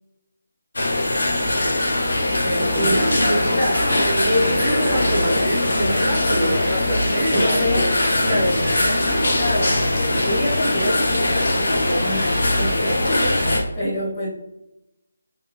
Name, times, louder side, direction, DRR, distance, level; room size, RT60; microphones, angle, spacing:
sound 1, 0.7-13.6, left 1 dB, 70° left, 0.8 m, -21 dB
voice 1, 2.2-3.9 4.2-6.0 6.3-6.8 7.1-7.9 8.1-12.2 12.5-14.3, left 1 dB, 20° left, -9 dB, 1.3 m, -27 dB
Male speech man speaking, 2.7-10.0, right 1 dB, 10° right, 0.7 m, -27 dB
3.5 x 2.6 x 2.7 m, 0.89 s
figure-of-eight pair, 165°, 0 cm